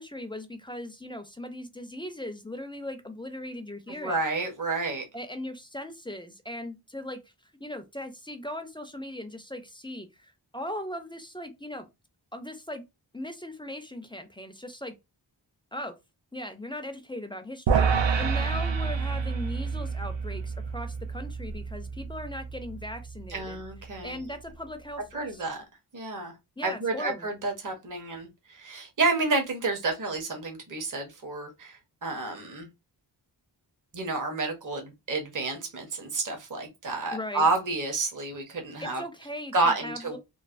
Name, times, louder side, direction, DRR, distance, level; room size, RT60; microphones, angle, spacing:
voice 1, 0.0-4.2 5.1-11.9 12.3-12.8 13.1-14.9 15.7-15.9 16.3-23.6 24.0-25.4 26.6-27.3 37.1-37.5 38.8-40.2, left 1 dB, 10° left, 0.4 m, -39 dB
voice 2, 4.0-5.0 23.3-24.2 25.1-25.6 25.9-26.3 26.6-32.7 33.9-39.0 39.5-40.2, right 3 dB, 45° right, 0.8 m, -30 dB
sound 1, 17.7-24.0, right 5 dB, 85° right, 0.6 m, -29 dB
3.1 x 2.0 x 2.4 m
wide cardioid pair, 80°, 43 cm